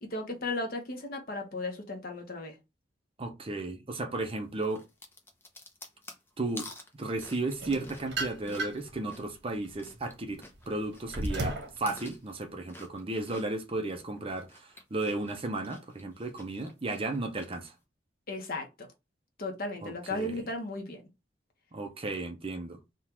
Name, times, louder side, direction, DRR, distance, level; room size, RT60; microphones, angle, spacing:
voice 1, 0.0-2.6 18.3-18.7 19.4-21.0, left 2 dB, 55° left, 1.0 m, -35 dB
voice 2, 3.2-4.8 6.4-6.7 7.0-17.7 19.8-20.4 21.7-22.8, right 2 dB, 30° right, 0.7 m, -34 dB
sound 1, 4.6-10.1 10.4-13.7 14.2-17.7, left 2 dB, 15° left, 0.7 m, -50 dB
sound 2, 7.6-9.0 9.5-11.8, right 1 dB, 75° right, 1.2 m, -35 dB
3.7 x 2.5 x 4.4 m
head